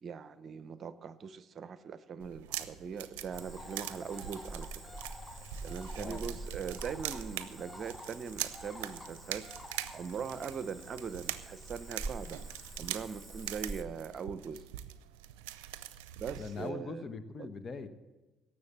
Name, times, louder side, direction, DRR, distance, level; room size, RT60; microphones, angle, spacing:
voice 1, 0.0-5.0 5.6-9.5 9.9-12.4 12.8-14.6 16.2-17.1 17.4-17.5, right 6 dB, 50° right, 14 dB, 0.7 m, -41 dB
sound 1, 2.2-16.7, right 13 dB, 85° right, 0.5 m, -43 dB
Cricket / Frog, 3.3-13.8, right 2 dB, 5° left, 1.4 m, -45 dB
voice 2, 6.0-6.4 16.4-17.9, left 4 dB, 40° left, 10 dB, 1.2 m, -41 dB
17.5 x 6.8 x 7.3 m, 1.1 s
supercardioid pair, 65°, 0 cm